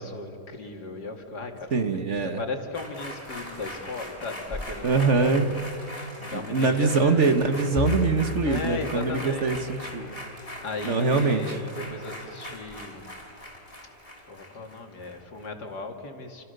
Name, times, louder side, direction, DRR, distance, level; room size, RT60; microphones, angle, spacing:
voice 1, 0.0-5.6 5.9-7.2 8.4-9.6 10.2-10.3 10.6-13.1 14.3-16.4, left 3 dB, 70° left, 3 dB, 3.0 m, -36 dB
voice 2, 1.7-2.4 4.8-5.5 6.3-10.2 10.8-11.6, right 4 dB, 45° right, 8 dB, 1.5 m, -23 dB
sound 1, 2.7-15.5 15.8-15.9, left 1 dB, 20° left, 5.2 m, -40 dB
sound 2, 7.8-10.2, left 7 dB, 35° left, 0.7 m, -34 dB
28.5 x 27.5 x 6.7 m, 2.7 s
omnidirectional pair, 1.8 m